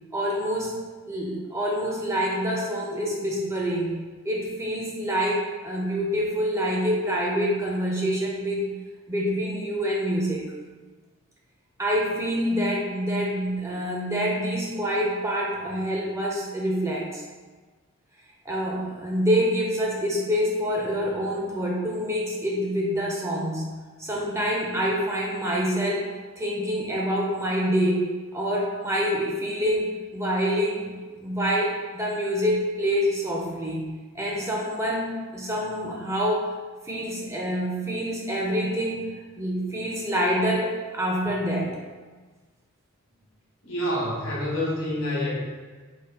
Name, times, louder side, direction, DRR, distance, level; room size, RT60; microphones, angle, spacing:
voice 1, 0.1-0.7 1.1-4.0 4.3-8.7 9.1-10.5 11.8-17.2 18.5-23.7 24.0-28.1 28.3-30.9 31.2-33.9 34.1-36.5 36.9-39.1 39.4-41.8, equal, 15° right, -2 dB, 0.4 m, -26 dB
voice 2, 43.6-45.4, left 1 dB, 70° left, -4 dB, 1.1 m, -27 dB
3.9 x 2.2 x 3.4 m, 1.4 s
head